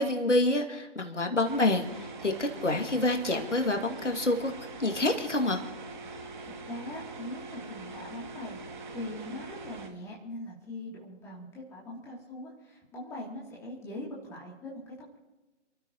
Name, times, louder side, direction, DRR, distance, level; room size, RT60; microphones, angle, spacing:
voice 1, 0.0-4.5 4.8-5.6, left 2 dB, 75° left, 4 dB, 2.4 m, -27 dB
sound 1, 1.4-9.9, right 3 dB, 40° right, 2.4 m, -43 dB
voice 2, 6.4-8.6 8.9-15.2, left 1 dB, 5° left, -4 dB, 2.9 m, -41 dB
29.5 x 13.0 x 3.0 m, 1.1 s
figure-of-eight pair, 145°, 36 cm